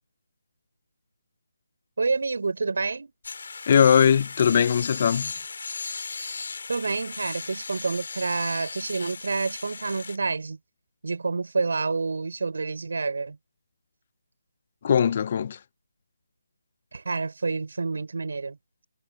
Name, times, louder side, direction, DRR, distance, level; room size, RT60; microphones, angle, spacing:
voice 1, 2.0-3.1 6.7-10.6 11.0-13.4 16.9-18.6, right 4 dB, 65° right, 6.3 m, -28 dB
sound 1, 3.2-10.2, left 4 dB, 60° left, 5.6 m, -36 dB
voice 2, 3.7-5.3 14.8-15.6, left 8 dB, 40° left, 0.6 m, -20 dB
figure-of-eight pair, 155°, 0 cm